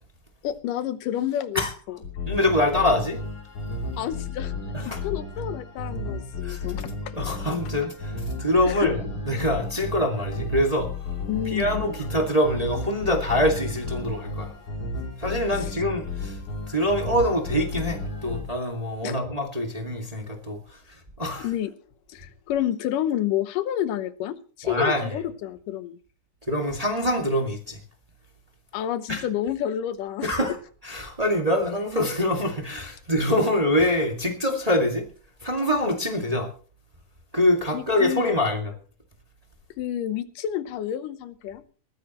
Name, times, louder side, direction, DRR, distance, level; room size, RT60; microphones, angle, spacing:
voice 1, 0.4-1.6 1.9-2.0 4.0-4.5 4.8-6.9 8.6-8.9 11.3-11.8 19.0-19.2 21.4-21.7 22.1-26.0 28.7-30.4 37.7-38.3 39.8-41.6, left 11 dB, 85° left, 2.6 m, -29 dB
sound 1, 2.0-18.4, left 3 dB, 60° left, 4.5 m, -33 dB
voice 2, 2.2-3.2 4.7-5.0 6.4-6.6 7.1-10.9 11.5-14.5 15.2-16.4 16.7-20.6 21.2-21.5 24.6-25.2 26.5-27.8 29.1-29.2 30.2-30.6 30.8-35.0 35.4-36.5 37.3-38.7, left 1 dB, 15° right, 1.5 m, -24 dB
20.5 x 14.5 x 3.0 m
omnidirectional pair, 3.7 m